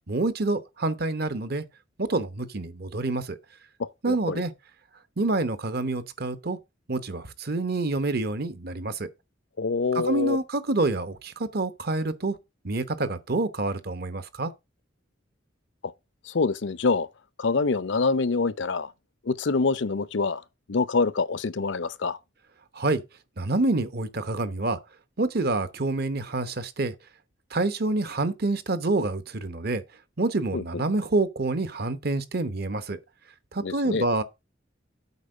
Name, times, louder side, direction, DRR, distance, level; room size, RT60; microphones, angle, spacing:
voice 1, 0.1-1.6 2.0-3.4 4.0-4.5 5.2-6.6 6.9-9.1 9.9-12.4 12.6-14.5 22.7-23.0 23.4-24.8 25.2-26.9 27.5-29.8 30.2-33.0 33.5-34.2, right 2 dB, 55° right, 0.9 m, -27 dB
voice 2, 3.8-4.4 9.6-10.4 15.8-15.9 16.3-17.1 17.4-18.9 19.3-20.4 20.7-22.2 30.5-30.6 33.6-34.0, left 4 dB, 65° left, 0.6 m, -26 dB
8.3 x 4.5 x 6.4 m
head